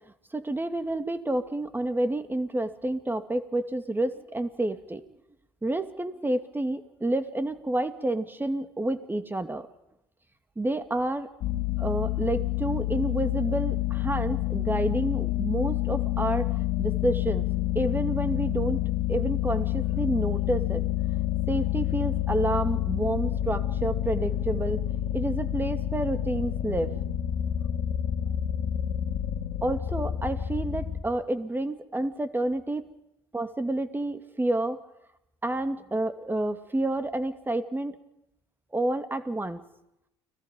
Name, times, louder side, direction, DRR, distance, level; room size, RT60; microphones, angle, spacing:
voice 1, 0.3-5.0 5.6-9.7 10.6-11.3 11.8-16.5 16.8-17.5 17.7-18.8 19.1-20.8 21.5-24.8 25.1-26.9 29.6-32.8 33.3-34.8 35.4-37.9 38.7-39.6, right 1 dB, 15° right, 9 dB, 2.5 m, -29 dB
sound 1, 11.4-31.0, left 13 dB, 65° left, 2.1 m, -28 dB
30.0 x 21.5 x 5.4 m, 0.84 s
hypercardioid pair, 60°, 14 cm